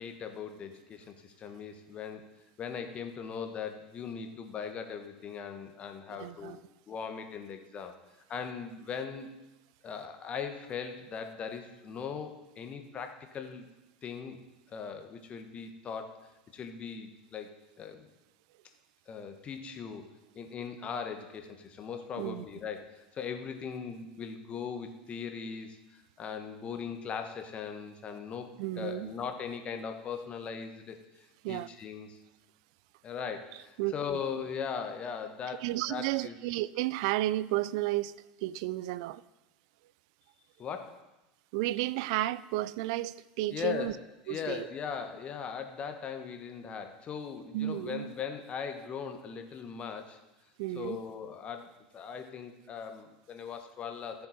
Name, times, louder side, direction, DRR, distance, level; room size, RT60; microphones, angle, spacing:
voice 1, 0.0-2.2 2.6-6.6 6.9-7.9 8.3-9.3 9.8-13.7 14.0-14.4 14.7-16.2 16.5-18.1 19.1-20.0 20.3-31.0 31.5-32.2 33.0-36.3 40.6-41.0 43.5-44.0 44.3-50.2 50.7-51.7 51.9-54.3, left 6 dB, 30° left, 1.4 m, -39 dB
voice 2, 6.1-6.6 22.2-22.4 28.6-29.1 31.4-31.7 33.8-33.9 35.6-38.1 38.4-39.2 41.5-43.9 44.3-44.7 47.5-48.1 50.6-51.0, right 16 dB, 55° right, 0.4 m, -32 dB
14.5 x 6.7 x 4.3 m
figure-of-eight pair, 80°, 4 cm